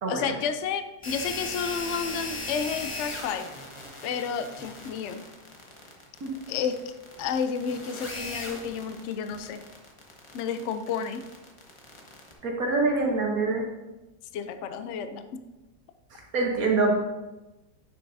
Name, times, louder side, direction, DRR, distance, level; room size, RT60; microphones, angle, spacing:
voice 1, 0.1-3.5 4.0-5.2 6.5-9.6 10.3-11.3 14.3-15.5, left 6 dB, 75° left, 9 dB, 0.6 m, -31 dB
sound 1, 1.0-12.3, left 2 dB, 20° left, 0.9 m, -38 dB
voice 2, 12.4-13.6 16.1-16.9, right 3 dB, 60° right, 0 dB, 1.5 m, -25 dB
9.1 x 7.1 x 2.6 m, 1.1 s
omnidirectional pair, 1.8 m